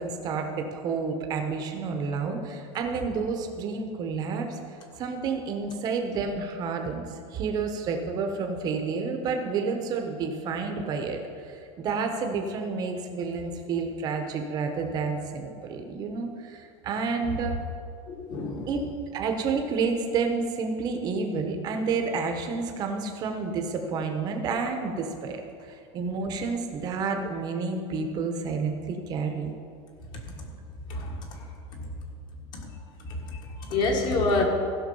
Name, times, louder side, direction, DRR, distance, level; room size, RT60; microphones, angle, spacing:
voice 1, 0.0-4.6 5.0-7.0 7.3-17.6 18.7-29.5, right 4 dB, 25° right, 4 dB, 1.0 m, -30 dB
voice 2, 18.1-18.7 30.2-30.5 30.9-31.4 31.7-31.9 32.5-32.7 33.0-34.4, left 3 dB, 30° left, 2 dB, 1.5 m, -29 dB
15.5 x 6.2 x 5.4 m, 2.3 s
supercardioid pair, 180°, 14 cm